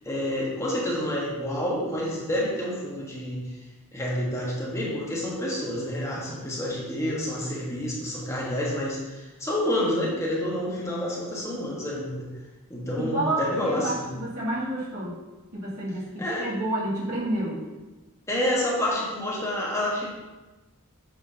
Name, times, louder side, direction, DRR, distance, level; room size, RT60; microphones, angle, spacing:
voice 1, 0.0-3.5 3.9-12.3 12.7-14.1 16.2-16.5 18.3-20.1, left 1 dB, 15° left, -5 dB, 1.4 m, -28 dB
voice 2, 13.0-15.2 15.5-17.6, right 1 dB, 70° right, -7 dB, 2.3 m, -29 dB
7.8 x 6.2 x 2.9 m, 1.1 s
head